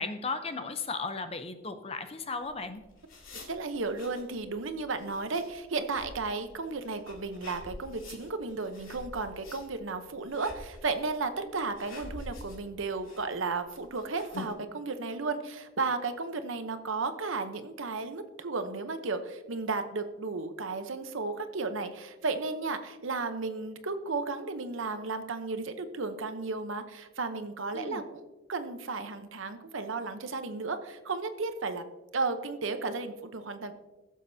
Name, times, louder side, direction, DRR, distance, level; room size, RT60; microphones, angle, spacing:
voice 1, 0.0-2.8 27.7-28.0, left 4 dB, 30° left, 9 dB, 0.6 m, -35 dB
sound 1, 2.4-14.5, left 2 dB, 80° left, 2.5 m, -47 dB
voice 2, 3.5-31.8 32.1-33.7, right 3 dB, 75° right, 9 dB, 0.8 m, -34 dB
15.5 x 7.4 x 2.7 m, 1.1 s
head